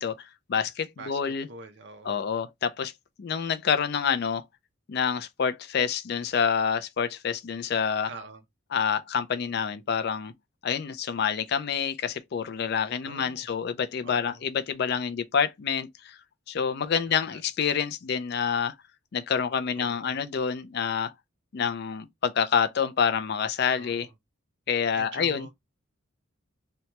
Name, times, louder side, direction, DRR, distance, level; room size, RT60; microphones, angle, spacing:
voice 1, 0.0-1.5 2.1-2.9 3.2-4.4 4.9-8.1 8.7-10.3 10.6-16.2 16.5-18.7 19.1-21.1 21.5-24.1 24.7-25.5, left 7 dB, 50° left, 0.3 m, -27 dB
voice 2, 1.0-2.3 8.1-8.4 13.0-13.5 14.0-14.4 17.1-17.4 19.8-20.2 23.7-24.1 24.9-25.6, right 3 dB, 55° right, 0.6 m, -45 dB
2.8 x 2.2 x 2.9 m
head